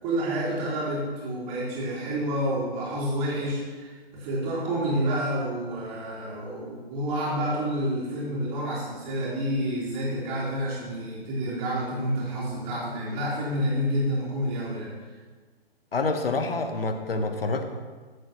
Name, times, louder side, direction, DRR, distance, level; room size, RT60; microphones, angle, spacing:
voice 1, 0.0-14.9, equal, 25° right, -7 dB, 3.8 m, -29 dB
voice 2, 15.9-17.6, left 3 dB, 65° left, 7 dB, 1.3 m, -27 dB
15.5 x 8.1 x 3.1 m, 1.4 s
figure-of-eight pair, 130°, 31 cm